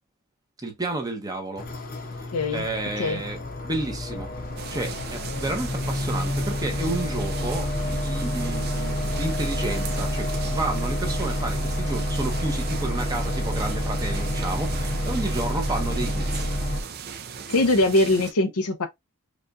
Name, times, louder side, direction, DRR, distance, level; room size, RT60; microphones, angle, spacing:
voice 1, 0.6-1.7 2.5-4.3 4.7-16.5, right 2 dB, 15° right, 0.9 m, -31 dB
sound 1, 1.6-16.8, left 1 dB, 40° left, 0.8 m, -28 dB
voice 2, 2.3-2.6 3.0-3.2 17.5-18.9, left 2 dB, 90° left, 0.8 m, -22 dB
sound 2, 4.6-18.3, right 6 dB, 45° right, 0.5 m, -38 dB
5.0 x 2.5 x 2.4 m
head